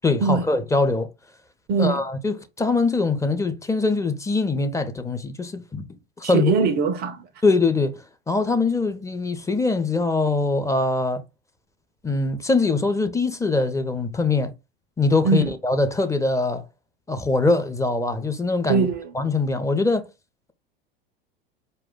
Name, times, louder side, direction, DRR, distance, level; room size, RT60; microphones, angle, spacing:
voice 1, 0.0-1.1 1.8-5.8 6.2-6.5 7.4-11.2 12.0-14.5 15.0-16.7 17.1-18.9 19.1-20.1, left 3 dB, 10° left, 0.7 m, -22 dB
voice 2, 1.7-2.0 6.2-7.3 15.2-15.5 18.7-19.1, right 5 dB, 35° right, 0.5 m, -21 dB
4.8 x 2.2 x 3.6 m
figure-of-eight pair, 90°, 30 cm